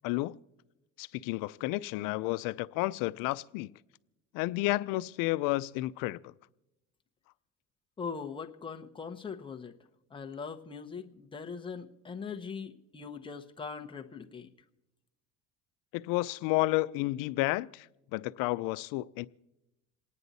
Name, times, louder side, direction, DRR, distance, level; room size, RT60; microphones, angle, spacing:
voice 1, 1.0-3.7 4.3-6.3 15.9-19.3, left 19 dB, 75° left, 0.5 m, -31 dB
voice 2, 8.0-9.7 10.1-14.5, left 5 dB, 15° left, 0.9 m, -41 dB
27.5 x 9.7 x 4.0 m
cardioid pair, 135°, 34 cm